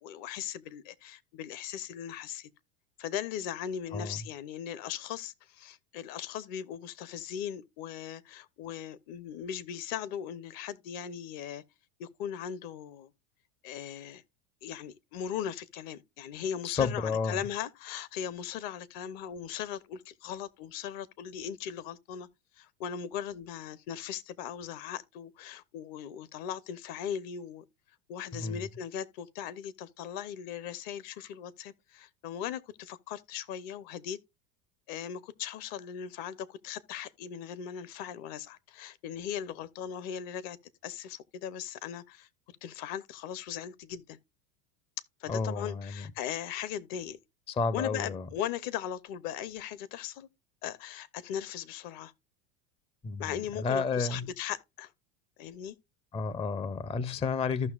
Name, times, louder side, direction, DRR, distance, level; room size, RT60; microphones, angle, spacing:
voice 1, 0.0-2.5 3.0-11.6 12.0-13.1 13.6-14.2 14.6-22.3 22.6-27.6 28.1-34.2 34.9-40.6 40.8-42.3 42.6-44.2 45.2-47.2 47.7-50.3 50.6-52.1 53.2-54.9 55.4-55.8, left 9 dB, 55° left, 0.8 m, -38 dB
voice 2, 16.6-17.4 28.4-28.6 45.3-46.1 47.5-48.3 53.0-54.3 56.1-57.7, left 5 dB, 15° left, 0.4 m, -31 dB
14.5 x 5.8 x 2.3 m
hypercardioid pair, 100°, 42 cm